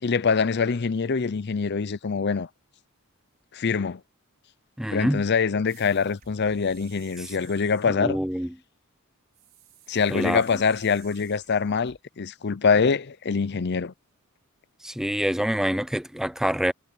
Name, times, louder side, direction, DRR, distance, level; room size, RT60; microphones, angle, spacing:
voice 1, 0.0-2.5 3.5-4.0 4.9-8.2 9.9-13.9, left 5 dB, 50° left, 0.6 m, -24 dB
voice 2, 4.8-5.2 7.2-7.3 7.9-8.5 10.1-10.4 14.8-16.7, equal, ahead, 0.4 m, -26 dB
sound 1, 5.7-8.1 9.3-12.0, right 9 dB, 45° right, 5.4 m, -53 dB
head